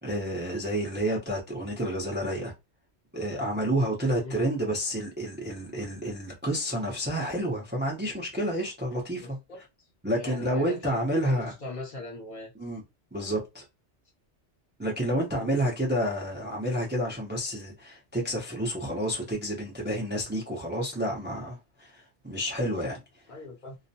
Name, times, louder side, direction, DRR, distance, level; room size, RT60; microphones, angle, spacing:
voice 1, 0.0-2.5 3.1-9.4 10.0-11.5 12.6-12.8 13.1-13.6 14.8-23.0, right 1 dB, 15° right, 0.5 m, -29 dB
voice 2, 9.2-9.6 10.1-12.5 15.3-15.5 23.3-23.8, left 2 dB, 50° left, 0.8 m, -40 dB
2.4 x 2.1 x 2.7 m
omnidirectional pair, 1.2 m